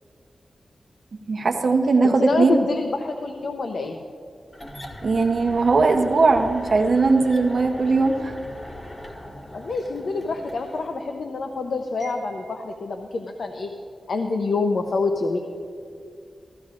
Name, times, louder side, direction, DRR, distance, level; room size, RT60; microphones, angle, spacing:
voice 1, 1.3-2.6 5.0-8.3, right 3 dB, 65° right, 5 dB, 0.8 m, -19 dB
voice 2, 2.0-4.0 9.5-13.7 14.1-15.4, left 3 dB, 75° left, 5 dB, 0.7 m, -26 dB
sound 1, 4.5-11.0, left 1 dB, 30° left, 1.6 m, -40 dB
17.0 x 14.0 x 2.5 m, 2.4 s
cardioid pair, 55°, 0 cm